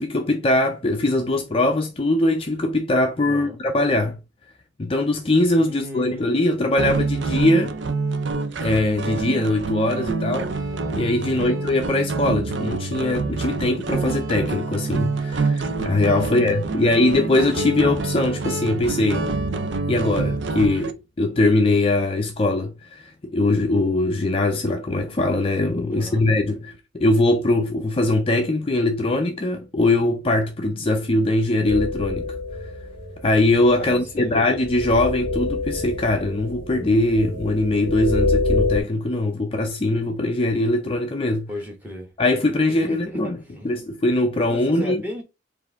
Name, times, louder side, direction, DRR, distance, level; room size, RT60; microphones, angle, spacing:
voice 1, 0.0-4.2 4.8-7.8 8.6-10.5 10.9-19.3 19.9-32.3 33.2-41.5 42.2-43.3 43.6-45.0, left 2 dB, 30° left, 0.4 m, -21 dB
voice 2, 3.2-3.6 5.5-6.4 11.2-11.7 16.2-17.2 25.9-26.2 33.8-34.5 41.5-42.1 42.7-43.7 44.5-45.2, left 1 dB, 10° right, 1.1 m, -36 dB
sound 1, 6.8-20.9, right 3 dB, 65° right, 0.5 m, -26 dB
sound 2, 31.7-38.8, left 2 dB, 80° right, 1.5 m, -26 dB
4.4 x 2.6 x 3.4 m
head